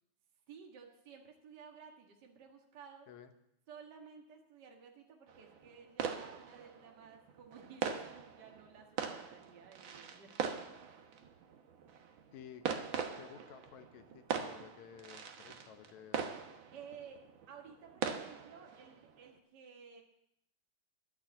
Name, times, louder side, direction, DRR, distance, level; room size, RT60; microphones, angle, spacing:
voice 1, 0.5-3.1 3.7-10.5 10.9-11.1 16.7-20.0, right 6 dB, 40° right, 1 dB, 2.0 m, -55 dB
sound 1, 5.3-19.4, right 7 dB, 60° right, 1.4 m, -42 dB
voice 2, 12.3-16.4, left 9 dB, 75° left, 8 dB, 2.3 m, -54 dB
11.0 x 8.6 x 9.0 m, 0.80 s
omnidirectional pair, 3.4 m